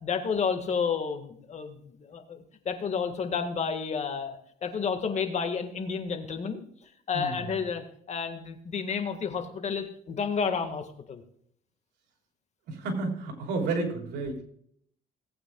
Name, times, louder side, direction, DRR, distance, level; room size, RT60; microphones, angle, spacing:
voice 1, 0.0-4.4 4.6-6.6 7.1-11.2, left 6 dB, 40° left, 7 dB, 1.8 m, -31 dB
voice 2, 7.1-7.5 12.7-14.4, right 3 dB, 80° right, 2 dB, 3.4 m, -31 dB
19.0 x 8.7 x 2.4 m, 0.66 s
cardioid pair, 110°, 17 cm